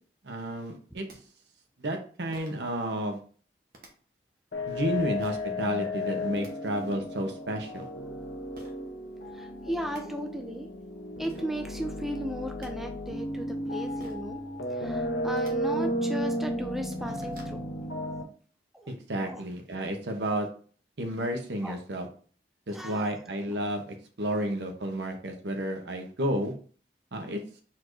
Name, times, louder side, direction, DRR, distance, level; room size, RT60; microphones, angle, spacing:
voice 1, 0.2-1.1 1.8-3.2 4.7-7.9 18.9-20.5 21.0-22.1 22.7-26.5 27.1-27.4, right 1 dB, 80° right, 4 dB, 0.9 m, -31 dB
sound 1, 1.1-1.2 2.3-2.7 3.7-3.9 5.2-5.5 6.1-6.5 8.5-8.7 9.5-9.6 9.8-10.0 10.9-11.0 11.2-11.5 12.3-12.7 14.0-14.3 15.3-15.5 16.2-16.3 16.7-17.6, right 1 dB, 55° right, 1.0 m, -50 dB
sound 2, 4.5-18.2, left 1 dB, 85° left, 0.9 m, -34 dB
voice 2, 9.3-10.7 11.2-14.4 14.8-17.6 18.7-18.9 19.3-19.4 21.6-21.8 22.7-23.1, equal, ahead, 3 dB, 0.4 m, -36 dB
4.3 x 2.6 x 4.5 m, 0.43 s
head